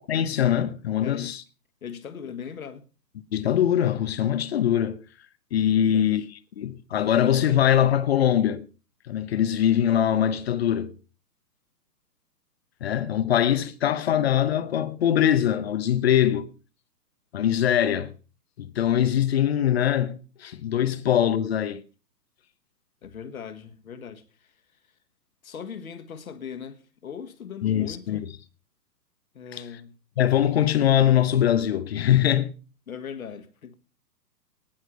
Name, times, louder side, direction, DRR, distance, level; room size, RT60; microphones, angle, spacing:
voice 1, 0.1-1.4 3.3-5.0 5.5-8.7 9.1-10.9 12.8-16.5 17.3-18.1 18.6-21.8 27.6-28.2 29.5-29.6 30.2-32.5, left 10 dB, 40° left, 0.9 m, -22 dB
voice 2, 1.0-1.4 1.8-2.9 5.7-6.3 23.0-24.5 25.4-28.3 29.3-30.0 32.9-33.7, left 7 dB, 60° left, 1.7 m, -39 dB
18.5 x 6.2 x 5.5 m
figure-of-eight pair, 120°, 49 cm